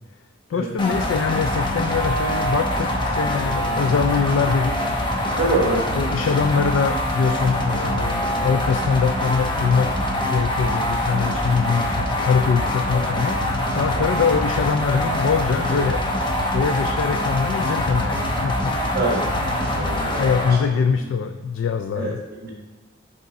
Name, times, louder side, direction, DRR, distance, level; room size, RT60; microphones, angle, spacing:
voice 1, 0.5-4.9 6.0-13.4 13.7-16.0 16.5-18.7 20.2-22.2, left 6 dB, 75° left, 7 dB, 0.3 m, -23 dB
sound 1, 0.8-20.6, left 1 dB, 25° left, 0.8 m, -24 dB
voice 2, 5.4-5.9 13.9-14.1 18.9-19.2 19.7-20.3 20.7-20.8 21.9-22.5, right 2 dB, 55° right, -2 dB, 1.2 m, -25 dB
6.7 x 3.6 x 4.7 m, 1.3 s
head